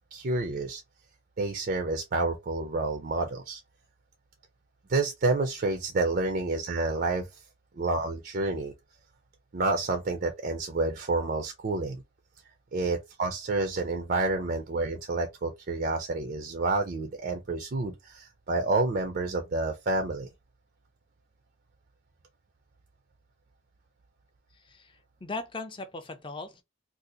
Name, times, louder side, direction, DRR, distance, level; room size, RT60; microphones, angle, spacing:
voice 1, 0.1-0.8 1.4-3.6 4.9-7.4 7.7-8.7 9.5-12.0 12.7-20.3, right 3 dB, 45° right, 0.4 m, -29 dB
voice 2, 24.7-26.6, left 3 dB, 25° left, 0.5 m, -39 dB
2.7 x 2.4 x 3.8 m
head